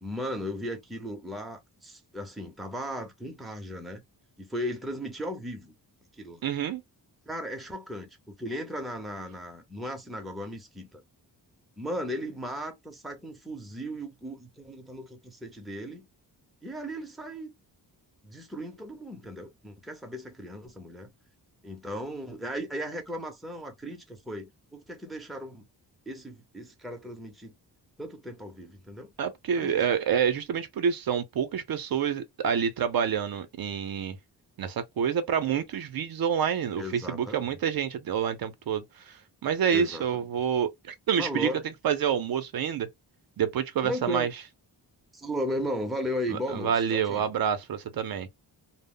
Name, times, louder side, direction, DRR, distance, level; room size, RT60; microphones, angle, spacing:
voice 1, 0.0-4.0 4.4-5.7 6.2-6.5 7.3-11.0 11.8-16.1 16.6-17.5 18.2-21.1 21.6-25.7 26.1-27.5 28.0-29.1 29.6-29.9 36.8-37.5 39.7-40.2 41.2-41.6 43.8-44.3 45.1-47.3, equal, ahead, 0.5 m, -36 dB
voice 2, 6.4-6.8 29.2-34.2 34.6-39.2 39.4-41.5 41.8-42.9 43.4-44.3 46.3-48.3, right 8 dB, 60° right, 0.5 m, -28 dB
2.0 x 2.0 x 3.5 m
wide cardioid pair, 115°, 41 cm